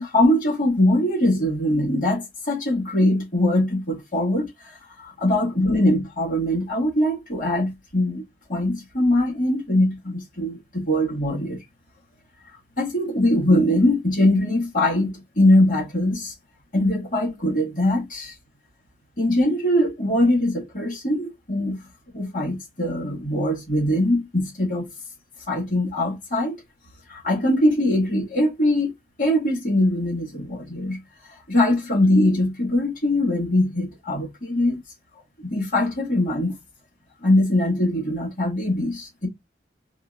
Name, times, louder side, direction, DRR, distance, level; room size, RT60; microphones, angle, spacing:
voice 1, 0.0-8.2 8.5-11.6 12.8-16.3 16.7-18.3 19.2-21.8 22.1-24.9 25.5-26.6 27.1-28.9 29.2-31.0 31.3-34.8 35.4-36.6 37.2-39.3, left 1 dB, 45° left, 1.7 m, -22 dB
4.1 x 2.6 x 2.3 m
head